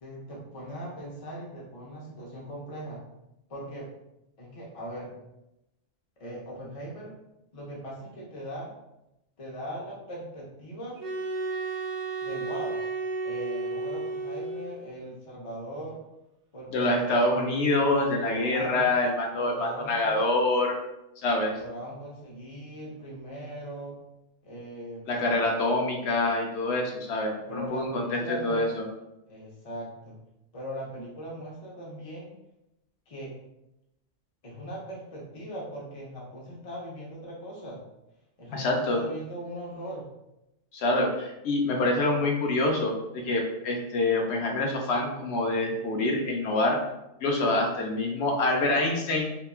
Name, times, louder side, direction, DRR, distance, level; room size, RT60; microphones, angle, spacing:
voice 1, 0.0-3.0 3.5-3.9 4.4-5.1 6.2-7.1 7.5-8.7 9.4-11.0 12.2-12.8 13.2-16.0 16.5-17.4 18.3-18.9 19.4-20.1 21.5-24.0 24.4-25.5 27.5-28.7 29.3-30.2 30.5-32.3 33.1-33.3 34.4-37.8 38.4-40.1, right 1 dB, 45° left, -4 dB, 0.5 m, -40 dB
sound 1, 11.0-14.9, right 3 dB, 75° right, 0.9 m, -32 dB
voice 2, 16.7-20.7 21.2-21.6 25.1-28.9 38.5-39.0 40.7-42.9 43.2-46.8 47.2-49.3, left 2 dB, 75° left, 0 dB, 0.8 m, -26 dB
2.8 x 2.2 x 2.3 m, 0.89 s
omnidirectional pair, 1.2 m